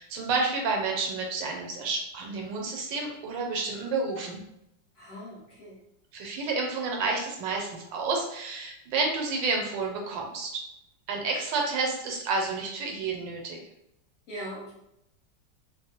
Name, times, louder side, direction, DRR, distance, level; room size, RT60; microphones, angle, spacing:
voice 1, 0.0-4.4 6.1-10.6 11.1-13.6, right 3 dB, 80° right, 1 dB, 1.3 m, -30 dB
voice 2, 4.9-5.8 14.3-14.7, equal, 50° left, -8 dB, 1.2 m, -40 dB
3.0 x 2.1 x 2.8 m, 0.81 s
omnidirectional pair, 2.0 m